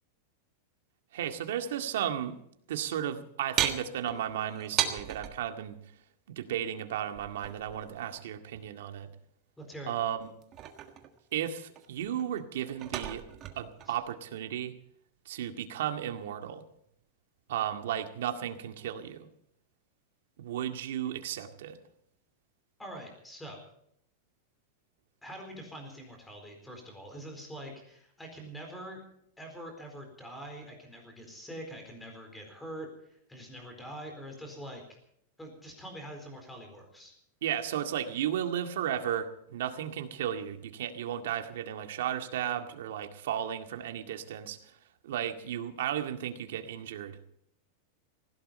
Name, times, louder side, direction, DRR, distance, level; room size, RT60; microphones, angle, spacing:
voice 1, 1.1-2.4 2.7-5.8 6.3-9.1 9.9-10.3 11.3-13.2 13.6-14.7 15.3-16.6 17.5-19.3 20.4-21.8 37.4-44.6 45.0-47.3, right 10 dB, 75° right, 6 dB, 2.0 m, -34 dB
sound 1, 3.6-5.4 7.1-8.2 10.2-11.4 11.8-14.0, right 10 dB, 30° right, 1.6 m, -35 dB
voice 2, 9.6-9.9 13.9-14.0 22.8-23.6 25.2-29.0 29.4-34.8 35.4-37.1, right 1 dB, 5° left, 3 dB, 4.2 m, -44 dB
19.0 x 16.0 x 4.4 m, 0.72 s
supercardioid pair, 170°, 0 cm